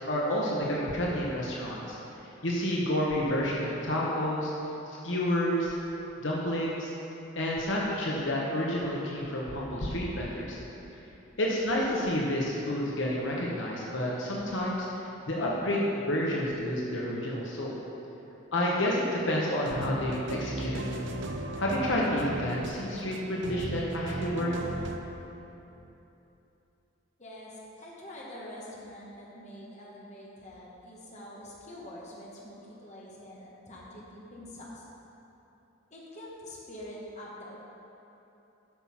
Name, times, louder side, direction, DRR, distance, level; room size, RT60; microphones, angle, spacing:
voice 1, 0.1-2.0 2.4-4.5 4.9-5.8 6.2-6.9 7.4-10.6 11.4-17.8 18.5-20.9 21.6-24.5, left 1 dB, 65° left, -4 dB, 1.1 m, -29 dB
sound 1, 19.6-25.0, right 2 dB, 65° right, 0.7 m, -36 dB
voice 2, 27.2-34.8 35.9-37.6, left 1 dB, 35° left, -5 dB, 1.5 m, -45 dB
9.1 x 5.7 x 5.8 m, 3.0 s
head